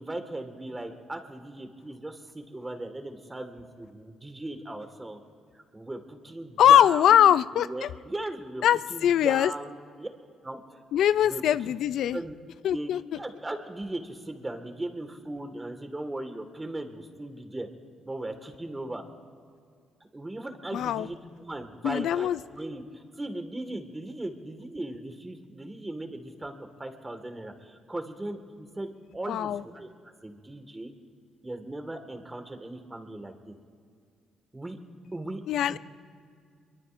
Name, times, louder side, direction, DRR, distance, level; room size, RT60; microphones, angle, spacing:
voice 1, 0.0-5.2 5.5-8.6 8.9-10.1 10.4-10.8 11.2-11.8 12.1-12.4 12.7-12.9 13.2-17.7 18.0-19.0 20.1-22.3 22.6-26.5 26.8-30.9 31.4-33.6 34.5-34.8 35.1-35.4 35.7-35.8, right 1 dB, 15° right, 6 dB, 1.8 m, -38 dB
voice 2, 6.6-7.9 8.6-9.5 10.9-12.2 12.6-13.0 20.7-21.1 21.8-22.4 29.3-29.6 35.5-35.8, left 10 dB, 75° left, 16 dB, 0.3 m, -22 dB
23.5 x 22.5 x 2.6 m, 2.2 s
cardioid pair, 90°, 0 cm